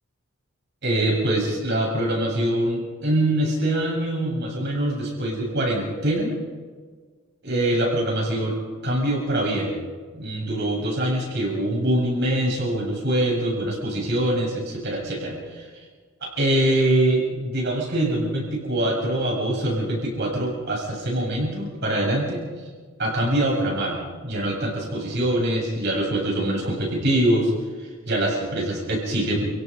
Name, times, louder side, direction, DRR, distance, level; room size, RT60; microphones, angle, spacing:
voice 1, 0.8-6.3 7.4-9.7 10.1-15.7 16.2-22.4 23.0-27.5 27.8-29.4, right 1 dB, 50° right, -2 dB, 7.6 m, -24 dB
29.5 x 17.5 x 5.5 m, 1.5 s
head